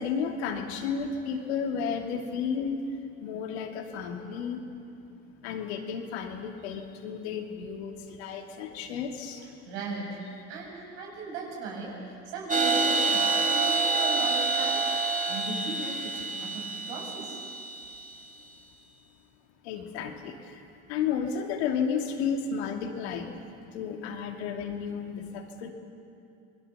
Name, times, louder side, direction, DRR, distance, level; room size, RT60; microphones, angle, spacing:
voice 1, 0.0-2.8 3.2-4.6 5.4-9.4 19.6-20.4 20.9-23.4 23.7-25.7, left 6 dB, 90° left, 3 dB, 2.5 m, -32 dB
voice 2, 9.7-10.2 10.5-14.9 15.3-17.4, right 3 dB, 85° right, -2 dB, 6.9 m, -38 dB
sound 1, 12.5-18.1, right 3 dB, 25° right, 2.7 m, -27 dB
26.5 x 21.0 x 6.9 m, 2.5 s
supercardioid pair, 80°, 31 cm